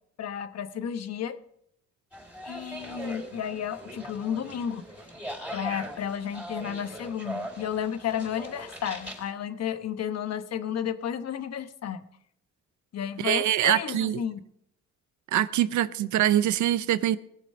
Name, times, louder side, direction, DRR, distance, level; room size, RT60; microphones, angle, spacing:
voice 1, 0.2-1.4 2.4-4.8 5.5-12.0 12.9-14.4, left 8 dB, 55° left, 1.1 m, -32 dB
sound 1, 2.1-9.3, right 1 dB, 5° right, 4.5 m, -40 dB
voice 2, 13.2-14.2 15.3-17.2, right 12 dB, 75° right, 0.7 m, -24 dB
19.5 x 7.2 x 5.5 m
cardioid pair, 90°, 30 cm